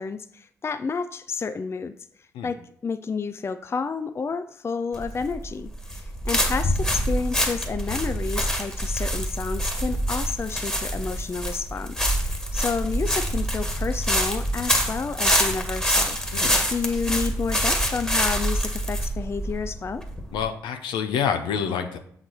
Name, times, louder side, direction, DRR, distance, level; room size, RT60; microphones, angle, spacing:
voice 1, 0.0-16.2 16.7-20.0, left 5 dB, 30° left, 12 dB, 0.4 m, -30 dB
sound 1, 4.9-20.5, equal, 10° left, 1.7 m, -26 dB
voice 2, 20.3-22.0, left 7 dB, 70° left, 7 dB, 0.7 m, -27 dB
7.7 x 4.0 x 4.5 m, 0.62 s
hypercardioid pair, 40°, 8 cm